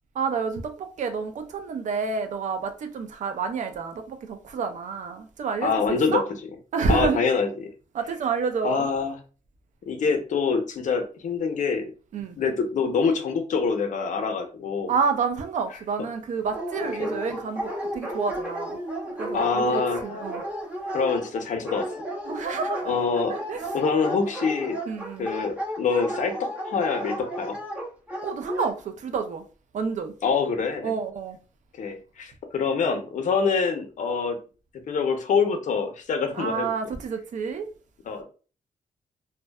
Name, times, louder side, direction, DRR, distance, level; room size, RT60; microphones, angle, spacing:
voice 1, 0.1-6.2 6.7-7.2 7.9-8.9 12.1-12.4 14.9-18.8 19.2-20.4 22.3-22.9 23.3-23.7 24.9-25.3 28.2-29.4 29.7-30.1 30.8-31.4 36.3-37.7, right 5 dB, 60° right, 0.5 m, -29 dB
voice 2, 5.6-6.2 6.9-7.7 8.6-9.2 9.8-11.9 12.4-14.9 17.0-17.1 19.3-20.0 20.9-21.9 22.9-23.4 23.7-24.8 25.2-27.6 30.2-30.9 31.8-34.4 34.9-36.7 38.1-38.2, left 5 dB, 65° left, 0.6 m, -25 dB
Dog, 16.5-28.7, equal, 10° right, 0.8 m, -33 dB
2.5 x 2.2 x 2.2 m
cardioid pair, 85°, 14 cm